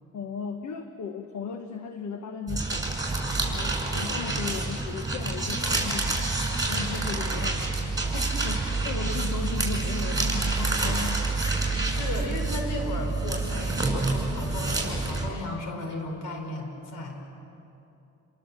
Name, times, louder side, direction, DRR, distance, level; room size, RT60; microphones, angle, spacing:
voice 1, 0.1-3.0 3.3-11.4, left 6 dB, 65° left, 6 dB, 1.5 m, -36 dB
sound 1, 2.5-15.3, right 3 dB, 10° right, 6.9 m, -28 dB
voice 2, 8.1-8.4 11.4-11.5 11.8-17.2, left 2 dB, 90° left, 4 dB, 4.7 m, -35 dB
29.0 x 22.5 x 7.4 m, 2.8 s
cardioid pair, 90°, 30 cm